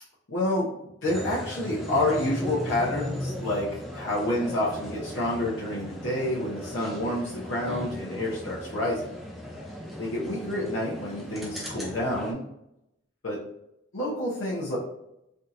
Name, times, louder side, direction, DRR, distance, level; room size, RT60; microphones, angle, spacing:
voice 1, 0.3-0.7 1.0-9.0 10.0-12.4 13.2-13.4 13.9-14.8, left 1 dB, 85° left, -7 dB, 0.8 m, -28 dB
sound 1, 1.1-12.3, equal, ahead, 0.4 m, -37 dB
3.4 x 2.8 x 2.5 m, 0.83 s
head